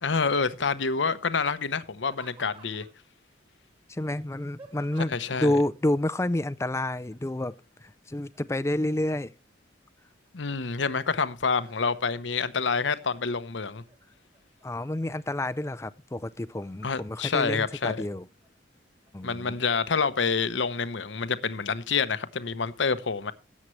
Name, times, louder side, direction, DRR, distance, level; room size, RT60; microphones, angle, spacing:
voice 1, 0.0-2.9 5.1-5.6 10.3-13.8 16.8-18.0 19.2-23.3, left 5 dB, 90° left, 0.9 m, -27 dB
Laughter, 2.0-3.1 4.0-5.4 7.1-7.6 7.9-9.5 10.0-10.7 11.1-12.4 12.8-13.4 13.9-14.6 15.1-16.0 17.1-17.9 18.4-18.5 19.1-19.3 19.9-20.1, right 3 dB, 30° right, 2.6 m, -54 dB
voice 2, 3.9-7.5 7.8-9.3 14.6-18.3 19.1-19.6, left 1 dB, 15° left, 0.4 m, -29 dB
17.0 x 7.4 x 3.2 m
head